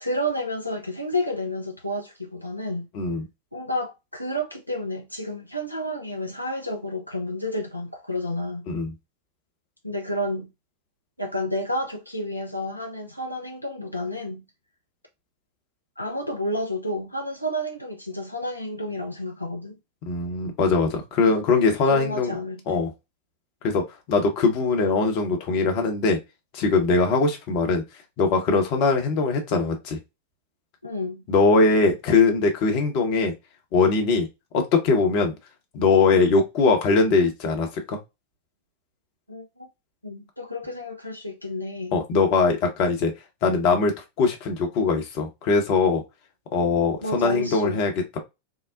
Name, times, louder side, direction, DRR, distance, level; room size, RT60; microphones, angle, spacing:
voice 1, 0.0-2.9 3.5-8.7 9.8-10.5 11.2-14.4 16.0-19.8 21.9-22.8 30.8-31.2 39.3-39.7 40.0-42.0 47.0-47.9, left 1 dB, 90° left, 0.4 m, -30 dB
voice 2, 2.9-3.2 8.7-8.9 20.1-22.4 22.7-22.9 23.6-26.2 26.5-27.8 28.2-30.0 31.3-33.3 33.7-34.3 34.5-35.3 35.7-38.0 41.9-43.1 43.4-46.0 46.5-48.2, left 4 dB, 45° left, 0.8 m, -21 dB
3.7 x 2.0 x 2.5 m
figure-of-eight pair, 90°, 0 cm